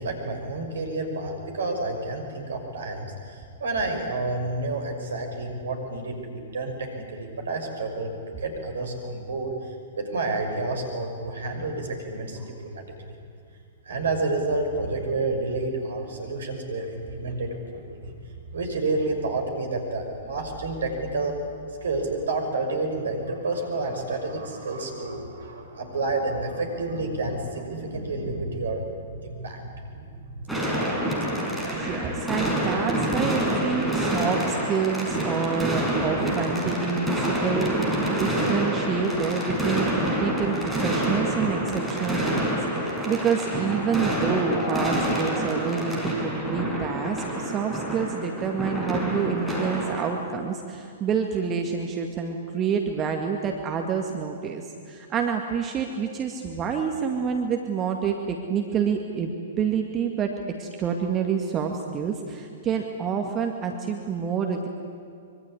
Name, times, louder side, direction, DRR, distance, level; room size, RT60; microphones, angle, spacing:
voice 1, 0.0-9.5 10.0-13.1 13.9-18.1 18.5-21.3 21.8-28.9 29.2-30.8, right 2 dB, 65° right, 4 dB, 6.1 m, -30 dB
voice 2, 12.3-12.6 31.7-60.3 60.6-64.7, right 6 dB, 25° right, 3 dB, 2.1 m, -28 dB
sound 1, 30.5-50.1, right 1 dB, ahead, 5.6 m, -27 dB
25.0 x 24.0 x 9.9 m, 2.4 s
figure-of-eight pair, 110°, 0 cm